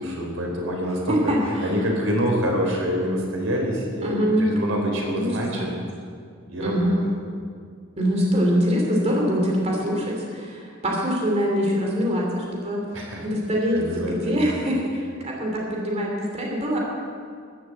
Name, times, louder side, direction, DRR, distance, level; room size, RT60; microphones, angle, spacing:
voice 1, 0.0-1.3 1.6-5.7 6.5-7.1 12.9-13.3 13.7-14.5, equal, 90° right, -1 dB, 4.1 m, -26 dB
voice 2, 1.1-1.7 4.0-4.6 5.1-5.3 5.6-5.8 6.6-7.0 8.0-12.8 13.2-16.8, equal, 35° right, -2 dB, 2.8 m, -24 dB
14.5 x 11.0 x 7.7 m, 2.1 s
head